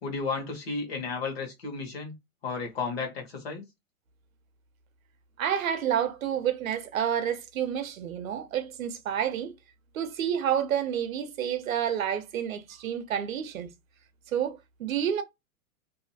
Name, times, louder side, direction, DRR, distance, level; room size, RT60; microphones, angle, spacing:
voice 1, 0.0-2.1 2.4-3.6, left 4 dB, 45° left, 1.2 m, -33 dB
voice 2, 5.4-9.5 9.9-13.7 14.3-15.2, right 9 dB, 65° right, 0.7 m, -29 dB
2.7 x 2.4 x 2.7 m
hypercardioid pair, 175°, 44 cm